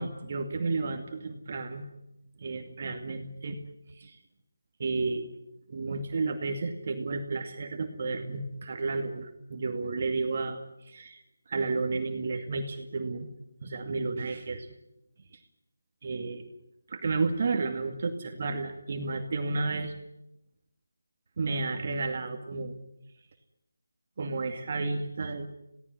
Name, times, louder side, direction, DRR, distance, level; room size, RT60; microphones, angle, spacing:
voice 1, 0.0-1.8 2.4-3.6 4.0-4.1 4.8-5.3 5.7-10.6 10.8-11.2 11.5-13.3 13.6-14.7 16.0-16.4 16.9-19.9 21.4-22.7 24.2-25.5, right 3 dB, 40° right, 5 dB, 2.3 m, -32 dB
28.0 x 17.5 x 9.7 m, 0.86 s
figure-of-eight pair, 160°, 0 cm